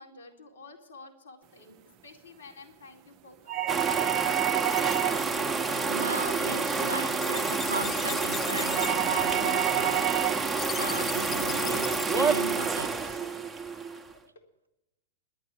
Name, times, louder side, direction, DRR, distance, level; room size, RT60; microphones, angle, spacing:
voice 1, 0.0-3.6 13.1-13.6 14.3-14.4, left 3 dB, 70° left, 2.5 m, -52 dB
sound 1, 3.5-5.4 8.7-10.5, right 13 dB, 35° right, 0.6 m, -29 dB
sound 2, 3.7-14.1, right 4 dB, 10° right, 1.0 m, -29 dB
sound 3, 4.1-12.2, left 7 dB, 25° left, 0.4 m, -40 dB
voice 2, 5.9-10.1 10.6-13.2, right 3 dB, 80° right, 0.5 m, -36 dB
11.5 x 8.5 x 10.0 m
figure-of-eight pair, 90°, 0 cm